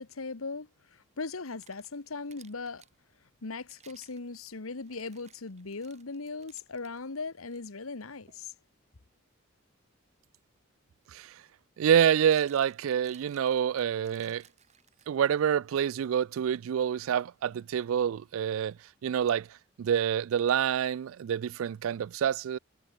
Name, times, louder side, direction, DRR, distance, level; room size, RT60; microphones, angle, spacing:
voice 1, 0.0-2.8 3.4-8.5, left 4 dB, 90° left, 1.3 m, -39 dB
sound 1, 1.3-3.0 3.5-7.0 7.5-7.6 8.3-8.5 10.6-10.7 11.9-15.4, right 8 dB, 35° right, 2.7 m, -61 dB
voice 2, 11.8-14.4 15.1-18.8 19.0-22.6, right 8 dB, 75° right, 0.3 m, -27 dB
head